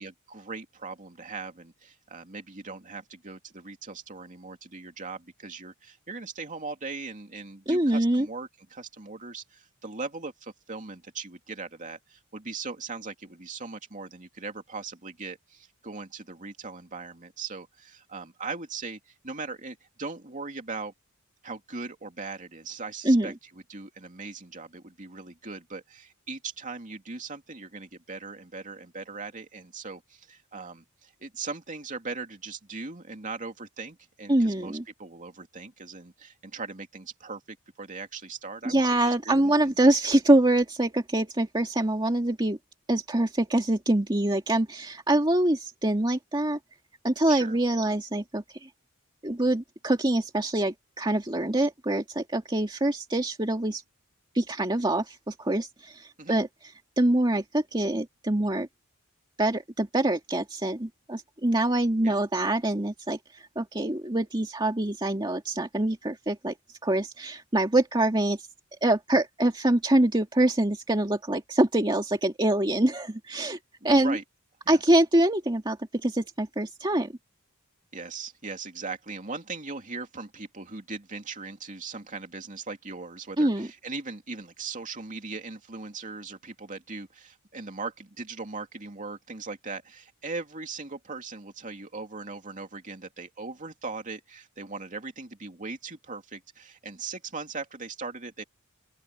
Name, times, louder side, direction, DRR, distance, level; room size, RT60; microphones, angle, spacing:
voice 1, 0.0-20.9 21.4-23.3 23.7-37.4 37.8-39.7 47.3-47.6 56.2-56.4 62.0-62.2 73.8-74.2 74.6-74.8 77.9-98.4, right 4 dB, 35° right, 2.7 m, -39 dB
voice 2, 7.7-8.3 23.0-23.3 34.3-34.8 38.6-42.6 42.9-46.6 47.0-48.7 49.2-53.8 54.3-58.7 59.4-66.6 66.8-68.5 68.8-73.6 73.8-74.2 74.7-77.1 83.4-83.7, right 1 dB, 20° right, 2.2 m, -25 dB
open air
head